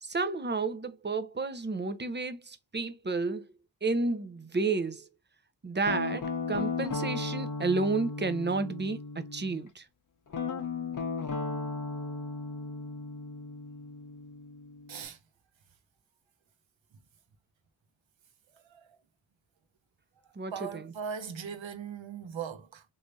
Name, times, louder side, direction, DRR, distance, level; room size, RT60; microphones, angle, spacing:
voice 1, 0.0-3.5 3.8-5.1 5.6-9.9 20.4-20.9, right 3 dB, 25° right, 0.7 m, -31 dB
Guitar, 5.9-9.6 10.3-15.0, left 4 dB, 40° left, 0.9 m, -36 dB
voice 2, 20.5-22.8, right 7 dB, 70° right, 0.9 m, -39 dB
3.4 x 2.7 x 2.7 m
cardioid pair, 60°, 47 cm